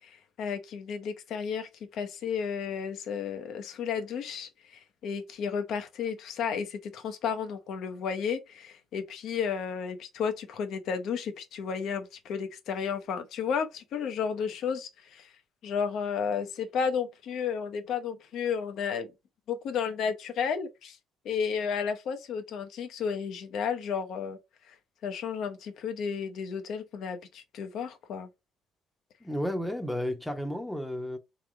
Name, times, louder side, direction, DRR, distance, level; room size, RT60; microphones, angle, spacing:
voice 1, 0.0-15.3 15.6-19.1 19.5-21.0 21.2-24.4 24.7-24.8 25.0-28.3, left 6 dB, 65° left, 0.8 m, -33 dB
voice 2, 29.2-31.2, equal, 5° left, 0.9 m, -32 dB
3.4 x 3.1 x 3.6 m
hypercardioid pair, 55°, 0 cm